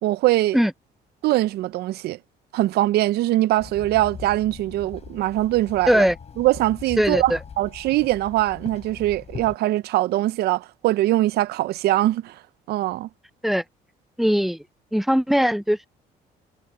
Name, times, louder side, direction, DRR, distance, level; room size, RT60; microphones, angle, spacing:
voice 1, 0.0-0.6 1.2-2.2 2.5-6.1 6.4-12.3 12.7-13.1, right 16 dB, 70° right, 0.5 m, -22 dB
Walk footsteps / Chatter / Hiss, 3.6-9.6, left 7 dB, 40° left, 5.2 m, -40 dB
voice 2, 7.0-7.4 13.4-13.6 14.2-14.6 14.9-15.9, equal, ahead, 0.4 m, -20 dB
cardioid pair, 110°, 17 cm